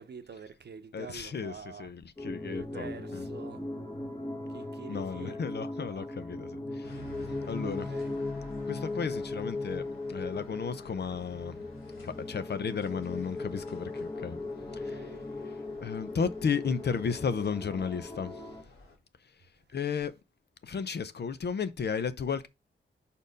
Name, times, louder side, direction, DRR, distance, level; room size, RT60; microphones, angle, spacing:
voice 1, 0.0-1.9 2.5-3.6 4.5-5.4 5.8-6.1 7.6-8.1 14.7-15.2, right 6 dB, 55° right, 0.8 m, -47 dB
voice 2, 0.9-3.3 4.9-7.0 7.4-7.9 8.6-11.6 12.0-14.4 14.7-15.1 15.8-18.4 19.7-20.2 20.6-22.5, left 6 dB, 55° left, 0.6 m, -34 dB
sound 1, 2.2-18.6, left 2 dB, 20° left, 1.2 m, -38 dB
sound 2, 6.8-19.0, left 1 dB, 90° left, 2.7 m, -53 dB
5.4 x 4.3 x 5.1 m
wide cardioid pair, 90°, 21 cm